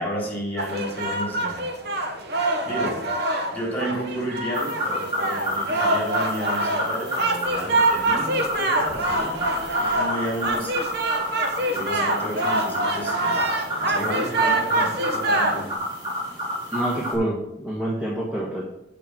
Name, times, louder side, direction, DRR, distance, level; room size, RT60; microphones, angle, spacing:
voice 1, 0.0-1.6 2.6-3.0 3.5-10.7 11.7-13.4 13.7-15.7, equal, 10° left, -4 dB, 3.9 m, -32 dB
sound 1, 0.6-15.7, right 2 dB, 60° right, 1.1 m, -25 dB
sound 2, 4.5-17.2, equal, 25° right, 2.8 m, -29 dB
voice 2, 16.7-18.6, right 1 dB, 5° right, -5 dB, 1.4 m, -27 dB
6.8 x 6.0 x 6.4 m, 0.84 s
head